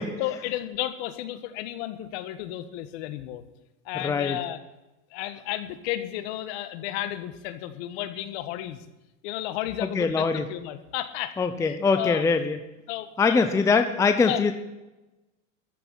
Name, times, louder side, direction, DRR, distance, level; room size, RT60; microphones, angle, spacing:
voice 1, 0.2-3.4 3.8-4.6 5.1-8.8 9.2-12.2 12.9-13.5 14.2-14.4, left 13 dB, 55° left, 11 dB, 1.6 m, -33 dB
voice 2, 4.0-4.4 10.0-10.4 11.4-12.6 13.2-14.5, left 4 dB, 10° left, 8 dB, 0.7 m, -22 dB
14.0 x 6.9 x 10.0 m, 1.0 s
supercardioid pair, 140°, 39 cm